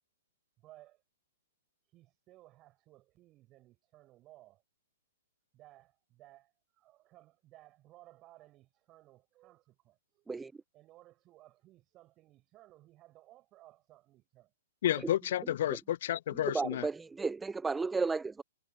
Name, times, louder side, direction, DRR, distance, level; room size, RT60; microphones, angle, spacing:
voice 1, 0.6-1.0 1.9-4.6 5.5-10.3 10.7-14.5, right 16 dB, 30° right, 7.1 m, -59 dB
voice 2, 14.8-16.9, left 12 dB, 50° left, 1.0 m, -31 dB
voice 3, 16.5-18.4, right 4 dB, 10° right, 0.3 m, -33 dB
figure-of-eight pair, 115°, 0 cm